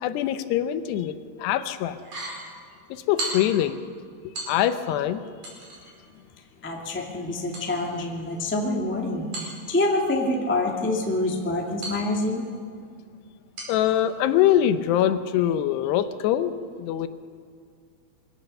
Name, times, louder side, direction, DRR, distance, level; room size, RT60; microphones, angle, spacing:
voice 1, 0.0-2.0 2.9-3.8 4.2-5.2 13.7-17.1, left 11 dB, 80° left, 11 dB, 2.9 m, -23 dB
sound 1, 2.0-2.5 3.2-3.7 4.3-4.9 5.4-6.0 7.5-8.6 9.3-10.2 11.8-12.6 13.6-14.0 14.4-14.5, right 2 dB, 50° right, 6.2 m, -37 dB
voice 2, 6.6-12.5, left 2 dB, 15° left, 0 dB, 0.4 m, -26 dB
23.0 x 17.0 x 6.7 m, 2.2 s
omnidirectional pair, 4.9 m